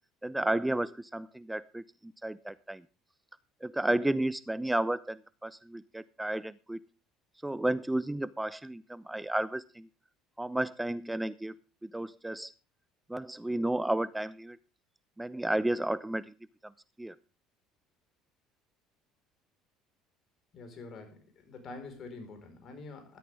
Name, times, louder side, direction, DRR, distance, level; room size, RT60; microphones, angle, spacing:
voice 1, 0.2-2.8 3.6-6.8 7.4-9.9 10.4-11.6 11.8-12.5 13.1-14.6 15.2-16.3 16.6-16.7 17.0-17.2, right 1 dB, 10° right, 18 dB, 0.5 m, -32 dB
voice 2, 20.5-23.2, left 3 dB, 50° left, 6 dB, 4.8 m, -46 dB
14.0 x 13.0 x 3.6 m, 0.34 s
hypercardioid pair, 65°, 0 cm